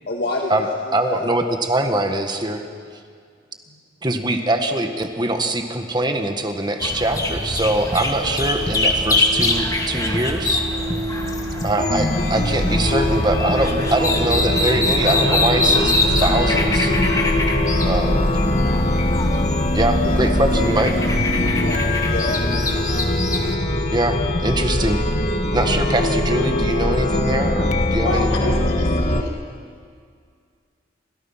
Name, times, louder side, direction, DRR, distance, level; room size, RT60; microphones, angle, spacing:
voice 1, 0.0-1.5 3.7-3.8 20.0-20.4 20.7-20.9 21.2-22.4, left 2 dB, 55° left, -1 dB, 2.1 m, -29 dB
voice 2, 0.9-2.6 4.0-10.6 11.6-17.0 17.8-18.4 19.7-20.9 23.9-25.0 25.5-28.5, right 1 dB, 25° right, 5 dB, 1.6 m, -23 dB
sound 1, 6.8-23.6, left 2 dB, 20° left, 2.0 m, -24 dB
sound 2, 8.4-19.1, right 1 dB, 70° right, 3.0 m, -32 dB
Chime, 11.8-29.2, left 1 dB, 40° left, 1.6 m, -22 dB
voice 3, 28.0-29.3, left 2 dB, 80° left, -2 dB, 5.4 m, -27 dB
29.5 x 26.0 x 5.8 m, 2.1 s
head